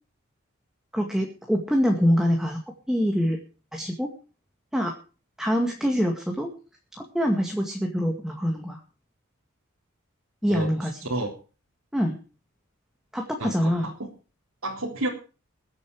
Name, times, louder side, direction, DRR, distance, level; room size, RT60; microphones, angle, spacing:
voice 1, 0.9-2.6 2.9-3.4 3.7-4.1 4.7-4.9 5.4-6.5 7.0-8.8 10.4-11.0 11.9-12.1 13.1-13.9, equal, ahead, 1 dB, 2.1 m, -24 dB
voice 2, 10.5-11.3 13.4-13.5 13.8-14.1 14.6-15.1, right 1 dB, 85° right, -3 dB, 3.6 m, -30 dB
22.0 x 8.6 x 4.8 m, 0.36 s
head